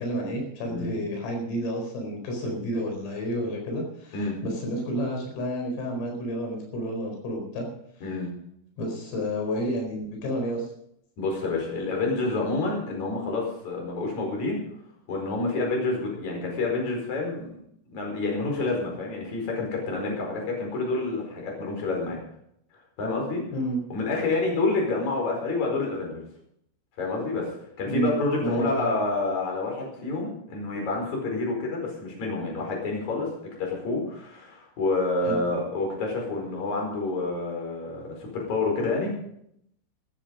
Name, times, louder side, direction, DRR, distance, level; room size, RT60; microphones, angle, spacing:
voice 1, 0.0-7.7 8.8-10.7 23.5-23.8 27.9-28.9 35.2-35.4, equal, 85° left, 1 dB, 7.1 m, -30 dB
voice 2, 11.2-14.6 15.1-17.5 17.9-22.2 23.0-23.4 23.9-26.2 27.0-27.5 27.8-33.3 33.6-39.1, left 3 dB, 35° left, 0 dB, 5.7 m, -28 dB
14.5 x 13.0 x 5.3 m, 0.72 s
omnidirectional pair, 5.8 m